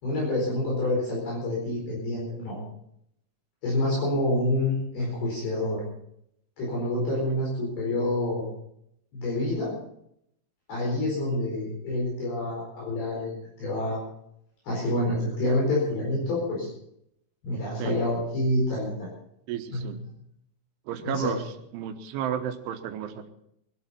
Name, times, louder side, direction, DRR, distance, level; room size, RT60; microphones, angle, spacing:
voice 1, 0.0-2.6 3.6-5.8 6.6-8.5 9.1-9.7 10.7-13.3 13.6-14.0 14.7-16.7 17.4-19.1 19.7-19.8 21.0-21.3, left 1 dB, 55° left, -4 dB, 6.3 m, -27 dB
voice 2, 19.5-20.0 20.9-21.4 21.7-23.3, right 9 dB, 80° right, 7 dB, 3.5 m, -32 dB
22.0 x 12.0 x 4.3 m, 0.74 s
omnidirectional pair, 5.5 m